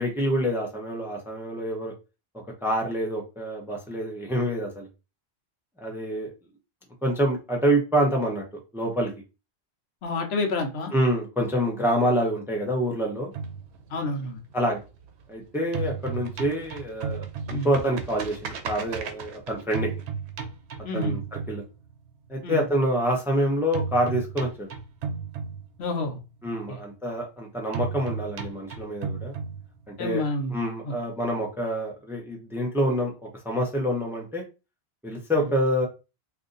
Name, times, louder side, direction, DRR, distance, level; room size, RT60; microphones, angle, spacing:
voice 1, 0.0-1.9 2.6-4.9 5.8-6.3 7.0-8.4 8.7-9.1 10.9-13.3 14.5-14.8 15.3-19.9 20.9-21.2 21.5-21.6 22.3-24.7 26.4-29.4 30.0-30.2 30.5-33.1 33.4-34.4 35.0-35.9, equal, 5° right, 0.7 m, -26 dB
voice 2, 10.0-10.9 13.9-14.4 17.5-17.7 20.8-21.2 22.4-22.6 25.8-26.2 26.7-26.8 30.0-30.5 30.8-30.9 35.4-35.5, left 2 dB, 75° left, 1.0 m, -29 dB
sound 1, 13.3-15.3 15.6-22.1 23.7-26.1 27.7-30.1, right 5 dB, 80° right, 0.9 m, -34 dB
2.7 x 2.6 x 3.8 m
omnidirectional pair, 1.1 m